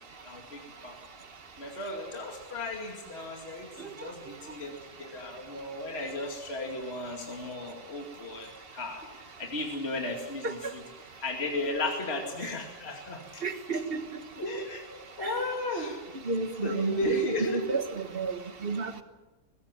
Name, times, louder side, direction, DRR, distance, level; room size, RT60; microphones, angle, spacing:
voice 1, 0.2-0.9 1.6-10.8 11.2-13.4 13.7-13.8 14.4-16.0 16.6-17.6, left 1 dB, 40° left, 2.7 m, -35 dB
voice 2, 13.4-14.0 15.2-15.3 16.3-17.9 18.1-18.3 18.6-19.0, right 4 dB, 35° right, 1.6 m, -31 dB
22.0 x 16.0 x 8.9 m
omnidirectional pair, 1.7 m